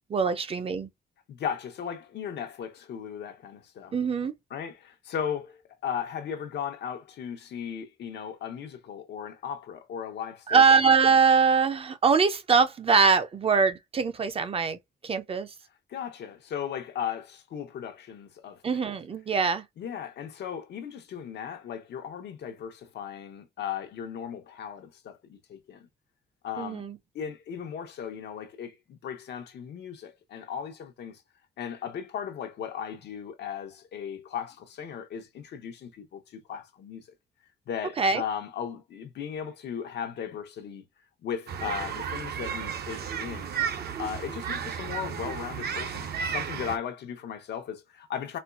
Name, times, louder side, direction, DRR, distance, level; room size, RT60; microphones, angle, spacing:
voice 1, 0.1-0.9 3.9-4.3 10.5-14.8 15.0-15.5 18.6-19.6 26.6-27.0 38.0-38.2, right 5 dB, 35° right, 0.5 m, -23 dB
voice 2, 1.3-3.9 4.5-10.6 15.9-18.6 19.8-25.9 26.4-26.8 27.1-31.2 31.6-37.1 37.7-40.8 41.2-43.6 44.0-48.4, left 8 dB, 85° left, 0.8 m, -36 dB
sound 1, 41.5-46.8, right 7 dB, 65° right, 0.7 m, -33 dB
4.3 x 2.3 x 2.3 m
wide cardioid pair, 135°, 17 cm